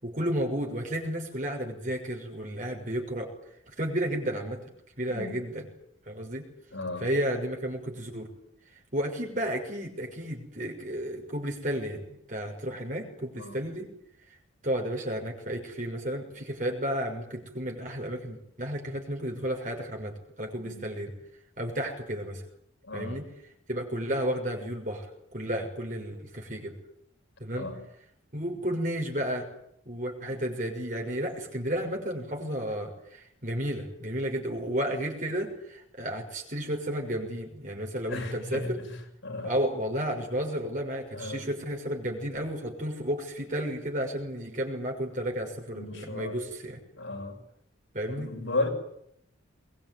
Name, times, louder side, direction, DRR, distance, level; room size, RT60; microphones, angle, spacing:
voice 1, 0.0-3.3 3.8-4.6 5.0-5.7 6.1-6.5 7.0-8.3 8.9-13.9 14.6-21.1 21.6-22.4 22.9-23.3 23.7-26.7 27.4-27.7 28.3-29.5 29.8-38.8 39.4-46.8 47.9-48.3, equal, 40° right, 6.3 m, -32 dB
voice 2, 6.7-7.1 13.3-13.6 20.6-20.8 22.8-23.2 27.6-27.8 30.2-30.4 38.1-38.9 39.2-39.5 41.1-41.5 45.7-46.4 47.0-47.4 48.1-48.7, left 2 dB, 70° left, 6.5 m, -34 dB
22.5 x 21.5 x 9.6 m
head